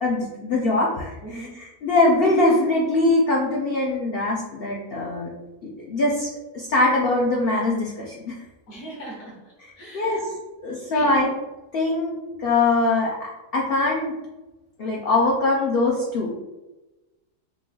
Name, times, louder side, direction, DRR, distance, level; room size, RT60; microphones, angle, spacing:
voice 1, 0.0-5.3 5.6-6.3 6.5-8.3 9.6-10.2 10.6-11.3 11.7-13.1 13.5-14.1 14.8-16.4, left 2 dB, 85° left, -2 dB, 0.5 m, -22 dB
voice 2, 1.2-1.6 8.7-9.4 9.8-10.3 10.9-11.1, right 1 dB, 60° left, -2 dB, 1.4 m, -38 dB
3.8 x 2.4 x 3.1 m, 1.1 s
omnidirectional pair, 1.7 m